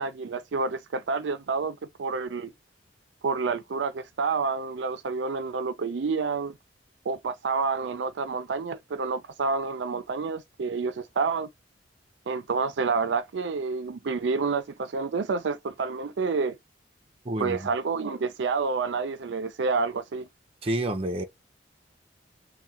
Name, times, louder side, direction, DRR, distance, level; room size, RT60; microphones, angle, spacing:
voice 1, 0.0-2.5 3.2-6.6 7.1-11.5 12.3-16.6 17.4-20.3, right 4 dB, 85° right, 0.5 m, -29 dB
voice 2, 17.2-17.7 20.6-21.2, right 1 dB, 35° right, 0.6 m, -29 dB
3.6 x 2.3 x 4.2 m
head